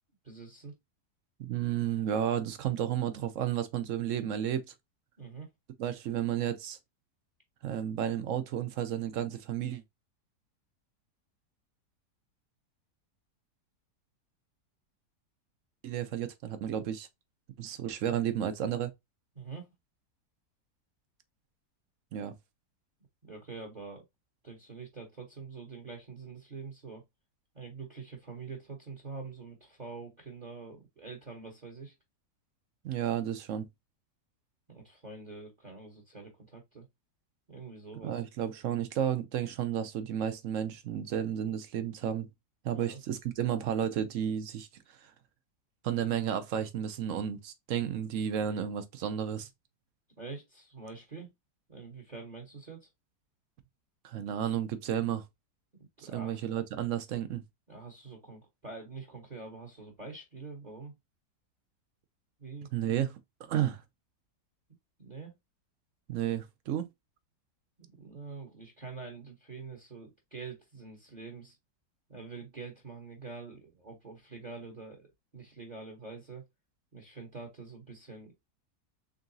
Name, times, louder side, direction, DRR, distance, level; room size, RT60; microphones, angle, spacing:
voice 1, 0.2-0.8 5.2-5.5 19.3-19.7 23.2-24.0 24.4-27.0 27.5-31.9 34.7-36.9 37.5-38.2 42.7-43.0 50.2-51.3 51.7-52.9 56.0-56.6 57.7-60.9 62.4-62.7 65.0-65.3 68.0-71.6 72.1-76.4 76.9-78.3, right 4 dB, 30° right, 1.0 m, -45 dB
voice 2, 1.4-4.7 5.8-6.8 7.6-9.8 15.8-17.1 17.6-18.9 22.1-22.3 32.8-33.7 38.0-42.3 42.6-44.7 45.0-45.1 45.8-49.5 54.0-55.2 56.0-57.4 62.7-63.8 66.1-66.9, right 10 dB, 65° right, 0.8 m, -32 dB
3.8 x 3.6 x 2.6 m
omnidirectional pair, 1.8 m